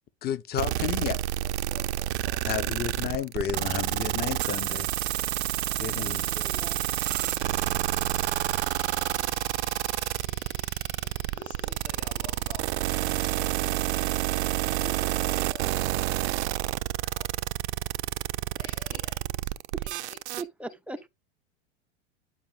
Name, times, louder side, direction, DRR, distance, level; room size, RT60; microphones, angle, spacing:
voice 1, 0.2-1.2 2.5-4.9 5.8-6.3, left 10 dB, 30° left, 0.6 m, -32 dB
sound 1, 0.6-20.4, right 15 dB, 80° right, 0.5 m, -29 dB
voice 2, 0.7-2.8 5.6-6.8 11.3-16.7 17.0-17.3 18.6-19.5 19.8-20.5, left 5 dB, 75° left, 3.2 m, -51 dB
sound 2, 6.0-14.0, left 8 dB, 50° left, 2.6 m, -52 dB
voice 3, 6.0-6.8 7.2-7.4 19.7-19.8 20.4-21.1, right 3 dB, 5° right, 0.3 m, -40 dB
11.0 x 5.0 x 2.3 m
hypercardioid pair, 100°, 33 cm